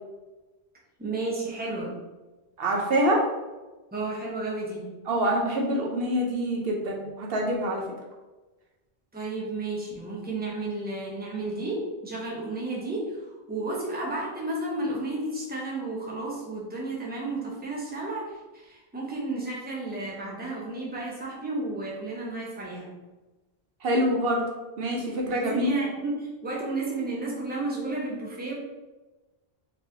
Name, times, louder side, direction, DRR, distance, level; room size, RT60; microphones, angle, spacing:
voice 1, 1.0-2.0 3.9-4.9 9.1-22.9 25.2-28.5, right 2 dB, 10° right, -4 dB, 0.8 m, -32 dB
voice 2, 2.6-3.2 5.1-7.8 23.8-24.4 24.8-25.7, equal, 70° right, 0 dB, 0.9 m, -25 dB
4.2 x 3.2 x 2.7 m, 1.1 s
omnidirectional pair, 1.0 m